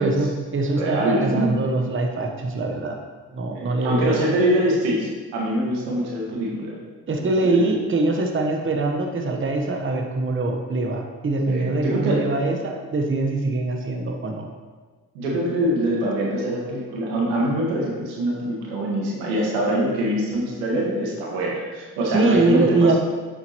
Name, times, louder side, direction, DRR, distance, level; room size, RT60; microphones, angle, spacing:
voice 1, 0.0-3.0 3.3-4.3 7.1-14.5 22.1-23.0, right 2 dB, 30° right, 3 dB, 1.0 m, -23 dB
voice 2, 0.8-1.5 3.5-6.7 7.2-7.8 11.5-12.2 15.1-22.6, right 1 dB, 90° right, -3 dB, 1.6 m, -24 dB
7.8 x 5.9 x 3.0 m, 1.4 s
hypercardioid pair, 50°, 40 cm